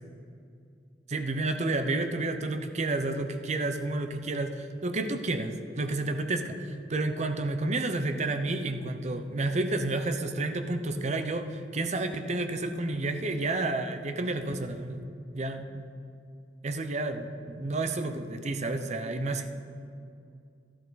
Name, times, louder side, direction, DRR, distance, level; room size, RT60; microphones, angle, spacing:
voice 1, 1.1-15.0 15.3-15.9 16.6-19.5, right 2 dB, 40° right, 8 dB, 0.7 m, -30 dB
12.5 x 11.5 x 4.1 m, 2.4 s
head